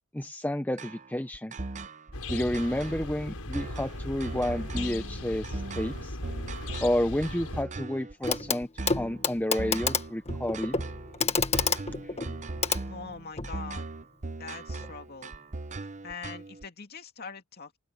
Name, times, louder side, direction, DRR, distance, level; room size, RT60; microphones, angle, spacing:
voice 1, 0.1-1.5 2.3-6.2 6.8-10.7, left 1 dB, 10° left, 0.8 m, -30 dB
sound 1, 0.8-16.6, right 3 dB, 35° right, 0.8 m, -39 dB
sound 2, 2.1-7.6, left 2 dB, 85° left, 5.1 m, -38 dB
Clock, 8.3-8.6 8.9-13.6 14.8-14.9, left 5 dB, 30° left, 1.6 m, -30 dB
voice 2, 12.9-13.9 14.4-15.3 16.0-17.8, left 5 dB, 45° left, 2.6 m, -42 dB
open air
head